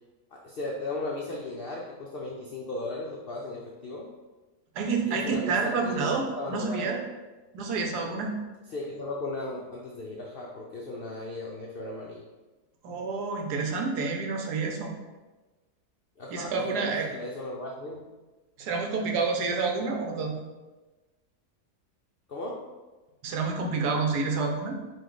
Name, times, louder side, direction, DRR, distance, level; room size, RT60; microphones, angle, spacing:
voice 1, 0.3-4.1 5.1-7.0 8.7-12.2 16.2-18.0 22.3-22.6, left 2 dB, 75° left, -2 dB, 0.5 m, -36 dB
voice 2, 4.7-7.0 7.5-8.3 12.8-14.9 16.3-17.0 18.6-20.4 23.2-24.8, right 4 dB, 85° right, 1 dB, 1.3 m, -29 dB
5.2 x 2.6 x 3.8 m, 1.2 s
omnidirectional pair, 1.7 m